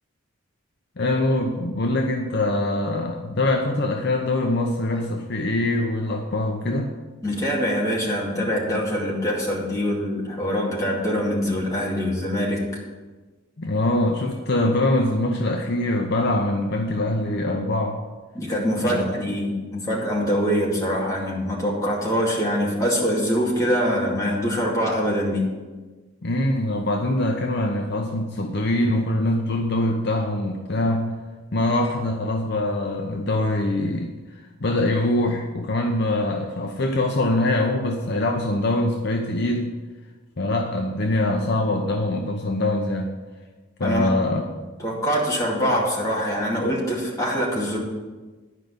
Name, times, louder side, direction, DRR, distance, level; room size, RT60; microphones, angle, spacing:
voice 1, 1.0-6.9 13.6-18.0 18.8-19.2 26.2-31.2 31.5-34.1 34.6-39.7 40.4-43.1 43.8-44.4, left 1 dB, 50° left, 2 dB, 0.7 m, -23 dB
voice 2, 7.2-12.6 18.3-25.5 43.8-44.1 44.8-47.8, equal, 15° left, -4 dB, 2.3 m, -24 dB
11.0 x 5.1 x 7.9 m, 1.3 s
head